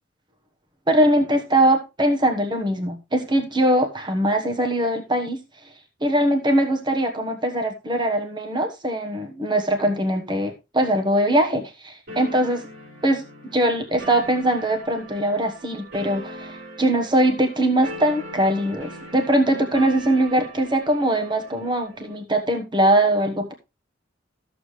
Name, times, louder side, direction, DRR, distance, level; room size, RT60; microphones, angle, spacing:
voice 1, 0.9-5.4 6.0-12.6 13.0-13.2 13.5-23.5, right 1 dB, 25° right, 5 dB, 1.2 m, -21 dB
sound 1, 12.1-22.1, right 1 dB, 55° right, 5.1 m, -40 dB
13.5 x 7.2 x 3.2 m, 0.25 s
head